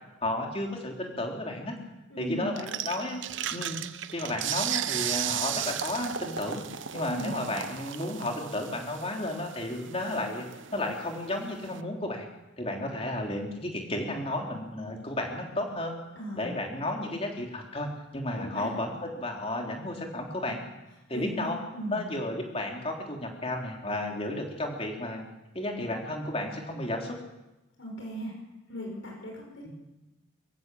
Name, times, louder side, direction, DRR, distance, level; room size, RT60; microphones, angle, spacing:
voice 1, 0.2-1.8 2.2-3.2 3.5-3.8 4.1-6.6 6.9-10.5 10.7-12.3 12.6-16.0 16.3-20.6 21.1-21.6 21.9-25.2 25.5-27.2 29.6-29.7, left 1 dB, 30° left, 1 dB, 3.4 m, -33 dB
voice 2, 2.1-2.8 7.0-7.3 16.2-16.5 18.4-18.7 21.1-22.0 27.8-28.3 28.7-29.7, equal, 75° left, -1 dB, 5.7 m, -37 dB
sound 1, 2.6-11.8, right 10 dB, 65° right, 0.9 m, -35 dB
24.5 x 15.0 x 7.7 m, 1.0 s
head